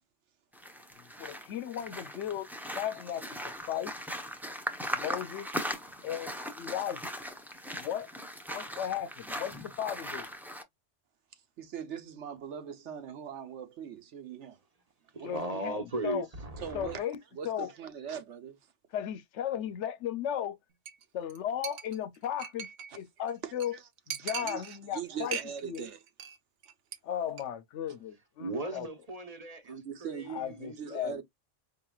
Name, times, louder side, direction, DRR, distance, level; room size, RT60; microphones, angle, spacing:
sound 1, 0.5-10.6, equal, ahead, 0.5 m, -39 dB
voice 1, 1.0-3.9 4.9-5.5 6.0-7.0 7.7-8.1 8.5-10.3 15.2-16.3 16.7-17.2 17.4-17.7 18.9-20.6 21.1-22.7 22.9-23.8 24.1-25.4 25.6-25.9 27.0-28.9 30.3-31.2, left 10 dB, 75° left, 0.9 m, -36 dB
voice 2, 11.6-14.6 15.2-15.3 16.6-17.0 17.3-18.6 23.4-23.8 24.2-24.7 24.9-26.0 29.7-30.4 30.8-31.2, right 8 dB, 70° right, 1.1 m, -41 dB
voice 3, 15.1-17.0 28.4-31.2, right 2 dB, 35° right, 0.9 m, -38 dB
Chink clink, 20.9-21.0 21.3-21.4 21.6-23.0 23.3-23.4 23.6-23.7 24.1-25.0 25.3-25.8 26.1-26.4 26.6-27.0 27.3-27.4, right 8 dB, 90° right, 1.1 m, -39 dB
5.0 x 3.0 x 2.3 m
omnidirectional pair, 1.2 m